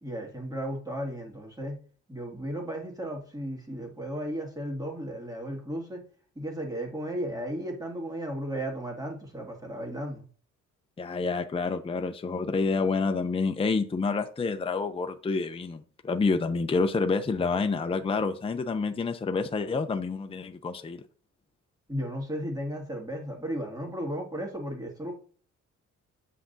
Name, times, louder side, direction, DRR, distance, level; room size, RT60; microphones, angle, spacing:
voice 1, 0.0-1.8 2.1-6.0 6.4-10.3 21.9-25.1, equal, 10° right, 1 dB, 2.1 m, -35 dB
voice 2, 11.0-21.0, left 4 dB, 20° left, 7 dB, 0.6 m, -28 dB
8.4 x 5.7 x 2.7 m, 0.43 s
cardioid pair, 95°, 31 cm